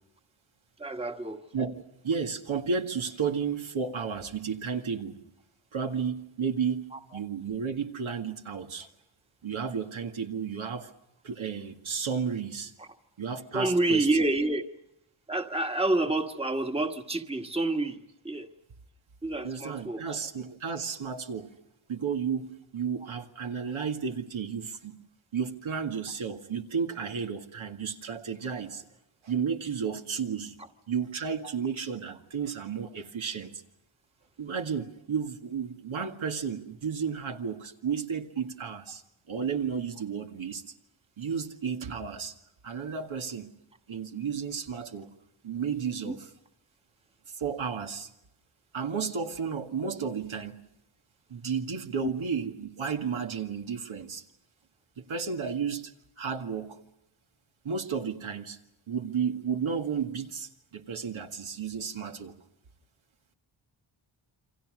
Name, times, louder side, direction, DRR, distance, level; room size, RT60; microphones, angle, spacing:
voice 1, 0.8-1.4 13.5-14.7 15.3-18.0 18.2-18.5 19.2-20.0 46.0-46.1, right 2 dB, 10° right, 1.4 m, -28 dB
voice 2, 1.5-5.2 5.7-8.9 9.4-10.9 11.2-12.7 13.2-14.2 19.4-21.5 21.9-25.0 25.3-28.8 29.2-30.5 30.9-33.6 34.4-39.0 39.3-40.7 41.2-42.3 42.6-43.5 43.9-45.1 45.4-46.3 47.3-48.1 48.7-50.5 51.3-54.2 55.0-55.9 56.2-56.8 57.6-58.6 58.9-62.4, right 6 dB, 80° right, 2.1 m, -33 dB
28.5 x 25.0 x 6.4 m
wide cardioid pair, 105°, 48 cm